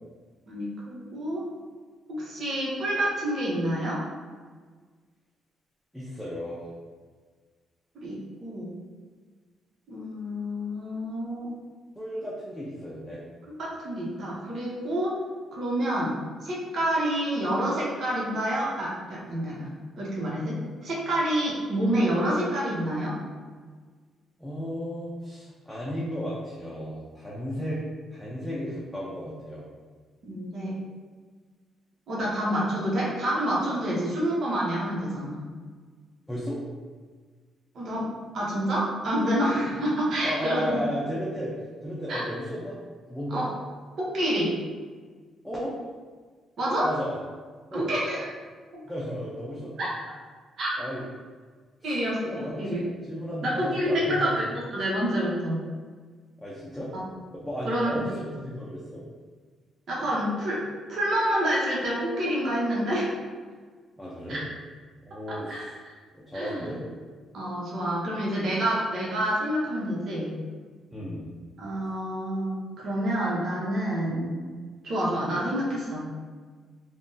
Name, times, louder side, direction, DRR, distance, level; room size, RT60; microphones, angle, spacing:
voice 1, 0.5-1.4 2.1-4.0 8.0-8.8 9.9-11.5 13.6-15.2 15.5-16.1 16.4-23.2 30.2-30.8 32.1-35.4 37.7-38.1 38.3-40.8 42.1-42.2 43.3-43.5 44.0-44.5 46.6-46.9 47.7-48.3 49.8-49.9 50.6-50.7 51.8-52.8 53.4-54.4 54.7-55.6 57.6-57.9 59.9-60.6 60.9-63.1 64.3-64.4 65.3-65.9 66.3-66.7 67.3-70.4 71.6-74.4 74.8-76.1, equal, 60° right, -5 dB, 0.8 m, -28 dB
voice 2, 5.9-6.7 11.9-13.2 24.4-27.8 28.1-29.7 36.3-36.6 40.2-41.5 41.8-42.8 43.1-43.4 45.4-45.7 46.8-47.2 47.7-47.9 48.8-49.8 50.8-51.0 51.8-52.0 52.3-54.5 56.4-56.9 57.4-59.0 64.0-64.4 65.0-65.8 66.1-66.9 70.9-71.2 74.1-74.2, equal, ahead, -7 dB, 0.6 m, -34 dB
3.3 x 2.1 x 2.6 m, 1.5 s
cardioid pair, 80°, 0 cm